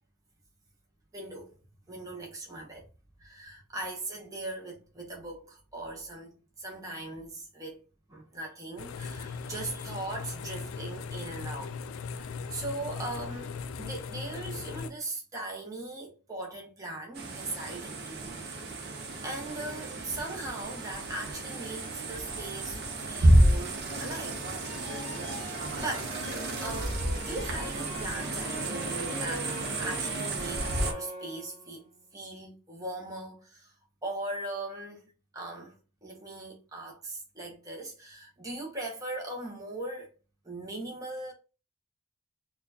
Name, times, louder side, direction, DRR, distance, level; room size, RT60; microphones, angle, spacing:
voice 1, 1.1-1.6 1.9-2.9 3.2-7.8 8.1-11.8 12.1-18.4 19.2-24.4 25.8-26.2 26.6-33.7 34.0-35.7 36.0-40.1 40.4-41.3, right 2 dB, 15° right, 0.8 m, -39 dB
sound 1, 8.8-14.9, left 5 dB, 75° left, 0.3 m, -38 dB
sound 2, 17.1-30.9, right 1 dB, 50° right, 0.6 m, -30 dB
sound 3, 24.6-31.8, equal, 35° left, 1.1 m, -43 dB
4.1 x 2.3 x 2.7 m
head